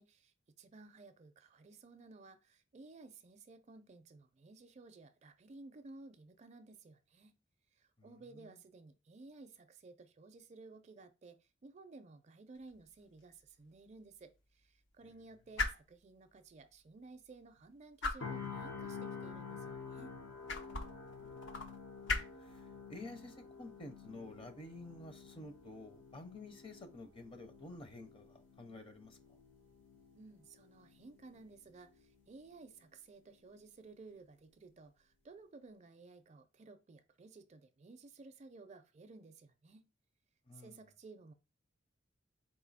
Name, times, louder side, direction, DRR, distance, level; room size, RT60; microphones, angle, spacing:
voice 1, 0.0-7.3 7.8-20.1 30.1-39.9 40.5-41.3, right 3 dB, 35° right, 0.4 m, -56 dB
voice 2, 8.0-8.6 15.0-15.1 21.2-21.5 22.4-29.4 40.5-40.8, left 2 dB, 30° left, 0.6 m, -51 dB
sound 1, 12.5-26.1, left 3 dB, 70° left, 0.7 m, -45 dB
sound 2, 18.2-32.2 32.5-32.8, left 5 dB, 90° left, 1.3 m, -50 dB
4.2 x 2.6 x 4.0 m
head